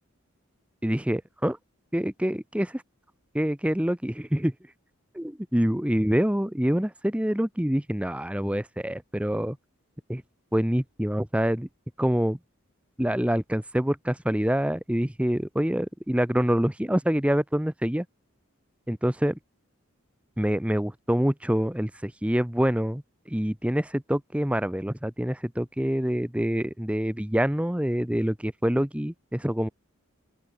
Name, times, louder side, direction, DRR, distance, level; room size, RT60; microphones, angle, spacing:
voice 1, 0.8-1.6 1.9-2.8 3.3-4.5 5.1-9.6 10.1-10.2 10.5-11.7 12.0-12.4 13.0-18.0 18.9-19.4 20.4-23.0 23.3-29.7, equal, 5° right, 0.8 m, -26 dB
open air
head